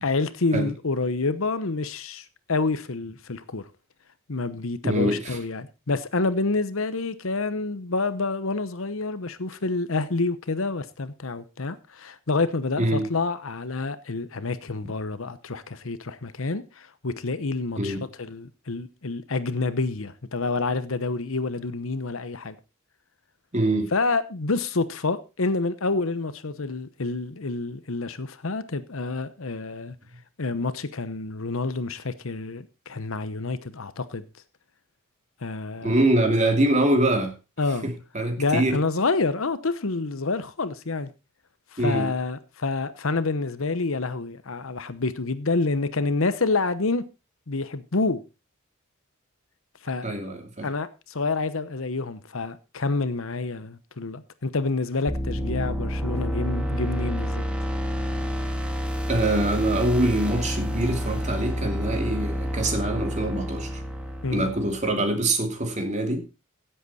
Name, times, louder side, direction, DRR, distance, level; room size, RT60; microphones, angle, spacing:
voice 1, 0.0-3.7 4.3-22.5 23.9-29.9 30.4-34.2 35.4-36.0 37.6-37.9 38.4-41.1 41.7-47.1 47.5-48.2 49.8-50.1 50.6-57.4 64.2-64.5, left 3 dB, 70° left, 0.9 m, -28 dB
voice 2, 4.8-5.4 12.8-13.0 17.8-18.0 23.5-23.9 35.8-37.3 37.8-38.8 41.8-42.1 50.0-50.7 59.1-63.8 64.3-66.3, right 1 dB, 35° right, 2.7 m, -24 dB
sound 1, 55.1-64.9, equal, 5° right, 1.8 m, -29 dB
16.0 x 8.0 x 4.2 m
head